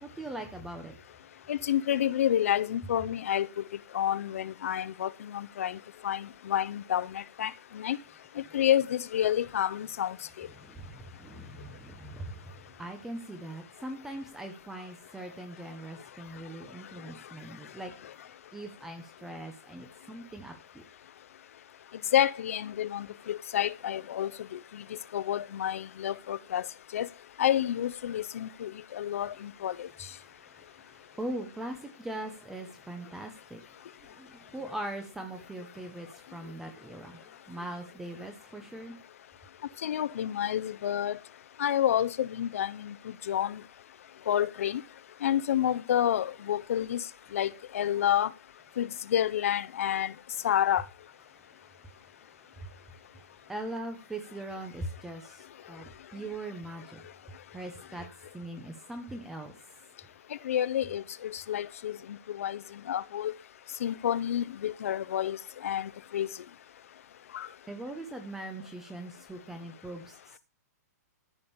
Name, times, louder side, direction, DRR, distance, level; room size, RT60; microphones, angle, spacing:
voice 1, 0.0-0.9 8.4-8.6 10.6-18.1 18.5-20.8 30.2-39.0 51.3-57.1 57.5-58.1 58.3-59.5 67.7-70.4, right 1 dB, 5° right, 0.9 m, -41 dB
voice 2, 1.5-3.5 3.9-5.8 6.0-8.0 8.5-10.5 22.1-24.8 25.1-26.6 26.9-27.1 27.4-29.9 39.8-41.2 41.6-42.9 43.3-43.6 44.3-44.8 45.2-47.0 47.3-48.3 48.8-50.1 50.4-50.8 60.4-62.0 62.4-62.6 62.9-63.3 63.8-65.4 65.6-66.3 67.3-67.5, left 10 dB, 55° left, 0.7 m, -29 dB
14.5 x 5.2 x 7.1 m
hypercardioid pair, 175°, 9 cm